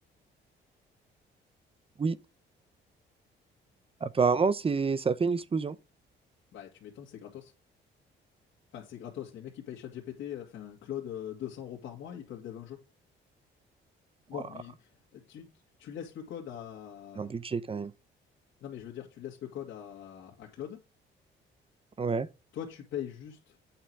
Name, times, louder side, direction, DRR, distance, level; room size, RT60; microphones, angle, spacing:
voice 1, 4.0-5.8 17.2-17.9 22.0-22.3, right 5 dB, 30° right, 0.7 m, -28 dB
voice 2, 6.5-7.5 8.7-12.8 14.3-15.5 15.8-17.4 18.6-20.8 22.5-23.6, left 10 dB, 75° left, 2.1 m, -41 dB
8.8 x 5.8 x 4.7 m
cardioid pair, 90°, 20 cm